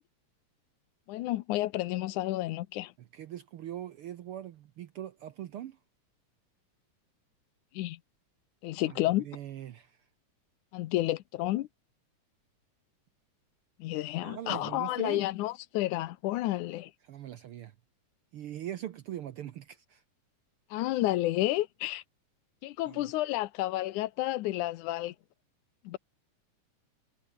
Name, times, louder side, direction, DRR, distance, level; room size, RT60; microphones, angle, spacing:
voice 1, 1.1-2.9 7.7-8.0 8.6-9.3 10.7-11.7 13.8-16.9 20.7-22.0 22.6-25.1 25.9-26.0, left 16 dB, 85° left, 2.3 m, -31 dB
voice 2, 3.1-5.8 8.9-10.0 14.2-15.2 17.0-17.7 18.3-20.0 22.9-23.1, right 11 dB, 70° right, 1.3 m, -41 dB
omnidirectional pair, 3.4 m